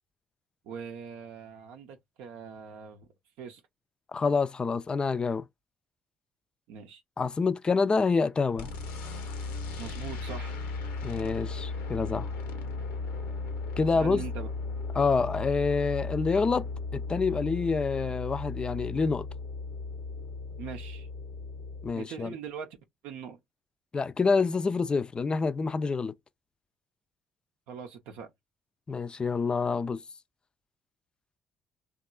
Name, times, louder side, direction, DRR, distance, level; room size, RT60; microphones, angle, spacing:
voice 1, 0.6-3.6 6.7-7.0 9.8-10.6 13.9-14.5 20.6-21.1 22.0-22.8 23.0-23.4 27.7-28.3, right 7 dB, 80° right, 0.5 m, -42 dB
voice 2, 4.1-5.5 7.2-8.7 11.0-12.3 13.8-14.2 14.9-19.2 21.8-22.3 23.9-26.1 28.9-30.0, left 4 dB, 30° left, 0.3 m, -27 dB
sound 1, 8.6-21.9, left 3 dB, 85° left, 0.8 m, -36 dB
2.9 x 2.3 x 2.2 m
supercardioid pair, 65°, 3 cm